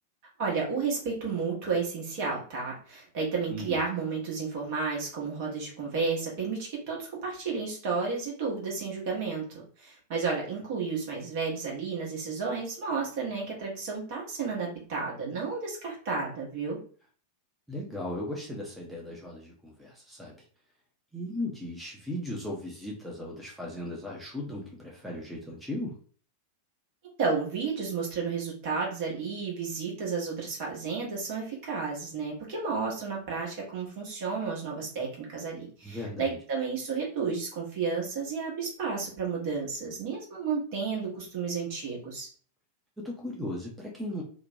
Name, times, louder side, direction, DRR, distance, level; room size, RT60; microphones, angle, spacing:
voice 1, 0.4-16.8 27.2-42.3, right 5 dB, 45° right, -3 dB, 1.0 m, -32 dB
voice 2, 17.7-20.3 21.1-26.0 35.8-36.4 43.0-44.2, left 1 dB, ahead, -2 dB, 0.6 m, -37 dB
2.8 x 2.1 x 2.7 m, 0.44 s
figure-of-eight pair, 90°, 0 cm